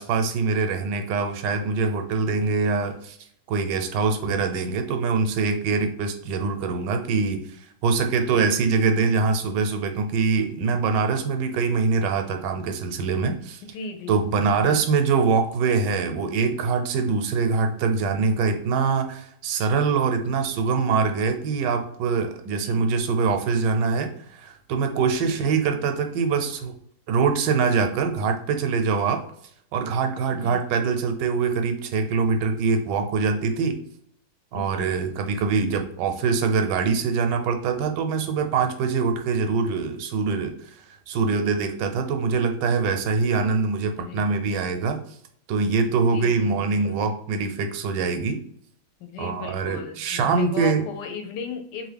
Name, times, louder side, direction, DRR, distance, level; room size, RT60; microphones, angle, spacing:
voice 1, 0.0-3.2 3.5-13.6 14.1-26.7 27.1-29.2 29.7-33.8 34.5-40.5 41.1-45.0 45.5-48.4 49.2-50.8, right 5 dB, 80° right, 6 dB, 1.2 m, -24 dB
voice 2, 13.7-14.2 14.6-14.8 22.5-22.8 25.4-25.5 30.3-30.6 34.5-34.9 44.0-44.3 46.1-47.0 49.0-51.9, left 6 dB, 80° left, 5 dB, 1.2 m, -37 dB
2.8 x 2.5 x 3.3 m, 0.67 s
omnidirectional pair, 1.9 m